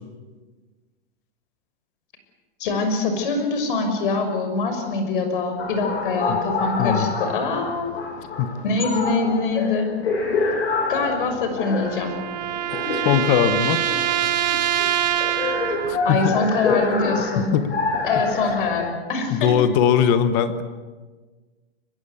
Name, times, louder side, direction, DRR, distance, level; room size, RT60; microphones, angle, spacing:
voice 1, 2.6-7.9 8.6-9.9 10.9-12.1 16.0-17.6 18.0-19.5, left 3 dB, 50° left, 6 dB, 6.2 m, -24 dB
sound 1, 5.6-18.9, left 4 dB, 85° left, 6.7 m, -27 dB
voice 2, 6.8-7.1 8.4-8.5 12.9-13.8 15.8-16.3 17.4-17.7 19.3-20.6, left 9 dB, 20° left, 12 dB, 1.0 m, -20 dB
sound 2, 11.4-16.1, right 12 dB, 40° right, 1.2 m, -25 dB
24.5 x 20.5 x 8.4 m, 1.3 s
supercardioid pair, 175°, 32 cm